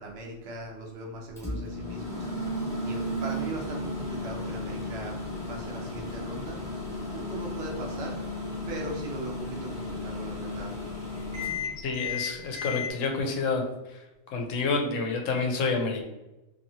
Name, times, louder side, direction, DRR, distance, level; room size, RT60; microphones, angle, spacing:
voice 1, 0.0-2.5 2.8-5.2 5.5-6.6 7.1-8.4 8.7-10.8, right 1 dB, 60° right, 0 dB, 0.9 m, -39 dB
Microwave oven, 1.4-12.9, left 2 dB, 5° left, 0.9 m, -34 dB
voice 2, 11.8-13.6 13.9-14.0 14.3-16.0, left 4 dB, 75° left, 3 dB, 1.0 m, -28 dB
2.8 x 2.7 x 2.7 m, 1.0 s
omnidirectional pair, 1.4 m